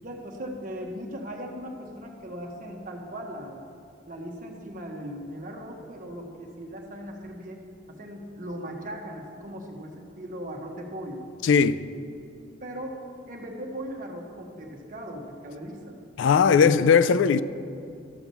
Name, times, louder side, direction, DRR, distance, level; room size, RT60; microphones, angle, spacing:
voice 1, 0.0-3.6 4.1-7.6 7.9-11.3 12.6-16.0, equal, 45° right, 1.3 m, -38 dB
voice 2, 11.4-11.8 16.2-17.4, left 6 dB, 80° left, 0.4 m, -19 dB
13.0 x 6.0 x 6.9 m
head